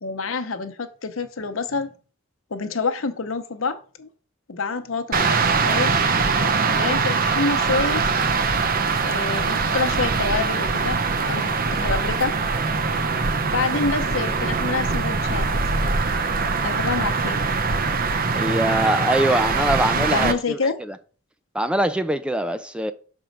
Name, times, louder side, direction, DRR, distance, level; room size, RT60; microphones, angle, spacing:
voice 1, 0.0-1.9 2.5-4.1 4.5-5.9 6.8-8.0 9.0-11.0 11.3-12.4 13.5-15.5 16.6-17.4 20.0-20.8, left 4 dB, 80° left, 0.8 m, -27 dB
sound 1, 5.1-20.3, right 4 dB, 45° right, 0.7 m, -22 dB
voice 2, 18.4-21.0 21.5-22.9, right 1 dB, 5° right, 0.4 m, -23 dB
6.2 x 4.5 x 5.2 m
head